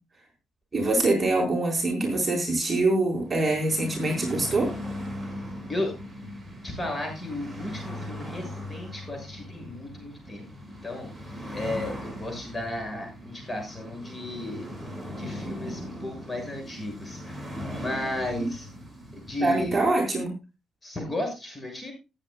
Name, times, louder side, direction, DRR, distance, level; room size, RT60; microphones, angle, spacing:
voice 1, 0.7-4.7 19.4-20.3, right 2 dB, 25° right, -1 dB, 4.5 m, -24 dB
sound 1, 3.1-19.9, equal, ahead, 5.7 m, -39 dB
voice 2, 6.6-10.5 10.8-11.1 11.5-14.7 15.2-18.7 19.1-19.8 20.8-21.9, left 1 dB, 20° left, 2 dB, 6.8 m, -34 dB
19.0 x 9.0 x 2.3 m, 0.27 s
cardioid pair, 90°, 0 cm